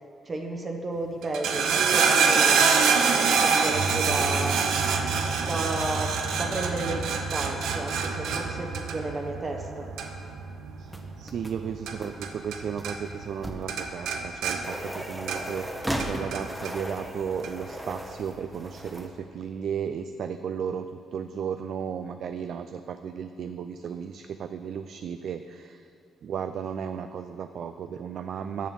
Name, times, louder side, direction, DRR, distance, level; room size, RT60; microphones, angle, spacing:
voice 1, 0.2-5.0 5.4-9.9, right 2 dB, 30° right, 2 dB, 0.8 m, -33 dB
sound 1, 1.2-12.6 12.8-13.4 13.7-15.6 16.0-16.7 17.4-17.5, right 5 dB, 80° right, 0.7 m, -25 dB
voice 2, 10.8-25.9 26.2-28.7, right 7 dB, 65° right, 9 dB, 0.3 m, -34 dB
sound 2, 10.9-19.1, equal, 5° right, 0.8 m, -37 dB
7.2 x 6.1 x 7.2 m, 2.6 s
cardioid pair, 90°, 0 cm